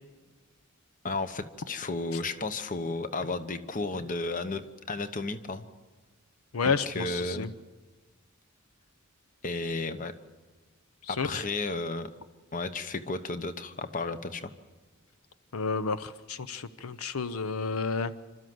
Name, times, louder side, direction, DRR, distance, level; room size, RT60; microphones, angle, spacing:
voice 1, 1.0-5.7 6.6-7.5 9.4-10.1 11.1-12.1 12.5-14.5, left 3 dB, 40° left, 11 dB, 1.0 m, -33 dB
voice 2, 6.5-7.5 11.0-11.4 15.5-18.2, left 4 dB, 85° left, 14 dB, 0.7 m, -31 dB
27.5 x 13.0 x 7.8 m, 1.3 s
head